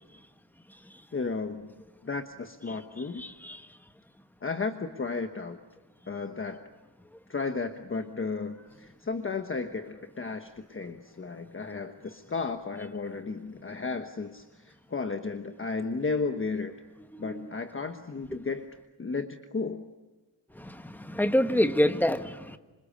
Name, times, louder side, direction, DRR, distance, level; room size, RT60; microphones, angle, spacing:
voice 1, 1.1-1.7 2.0-3.2 4.4-5.6 6.1-6.7 7.3-16.8 17.2-18.7 19.0-19.9, left 4 dB, 30° left, 1.2 m, -34 dB
voice 2, 3.2-3.7 17.1-17.4 18.3-18.4 20.5-22.6, left 1 dB, 5° left, 1.3 m, -27 dB
26.5 x 26.5 x 8.5 m
wide cardioid pair, 135°, 43 cm